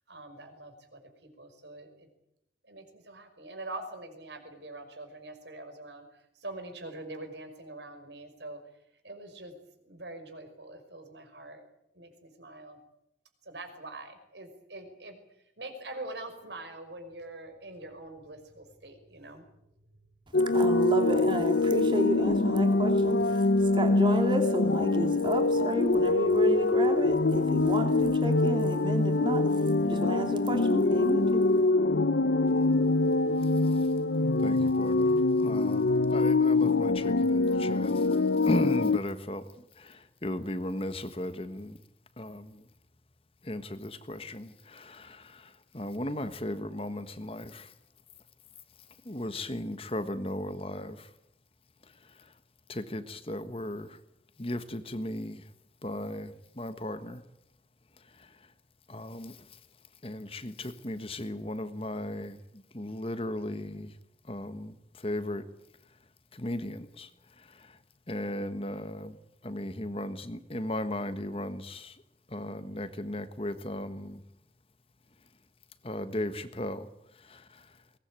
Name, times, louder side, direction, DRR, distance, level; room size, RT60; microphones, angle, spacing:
voice 1, 0.1-2.1 2.6-8.6 9.0-9.5 9.8-11.6 11.9-12.8 13.4-15.2 15.6-19.5, right 2 dB, 80° right, 7 dB, 5.6 m, -44 dB
sound 1, 20.3-39.0, left 2 dB, 85° left, 0.8 m, -24 dB
voice 2, 20.5-23.4 23.7-29.5 29.8-31.5, equal, 25° right, 5 dB, 3.0 m, -31 dB
voice 3, 33.4-33.9 34.4-41.8 42.2-42.7 43.4-47.7 49.0-51.1 51.8-52.4 52.7-54.0 54.4-55.5 55.8-57.2 58.0-58.5 58.9-59.6 60.0-64.0 64.2-65.4 65.9-66.0 66.3-67.8 68.1-69.2 69.4-72.0 72.3-74.2 75.8-77.8, left 1 dB, 30° left, 11 dB, 1.4 m, -37 dB
22.0 x 19.5 x 9.0 m, 0.80 s
head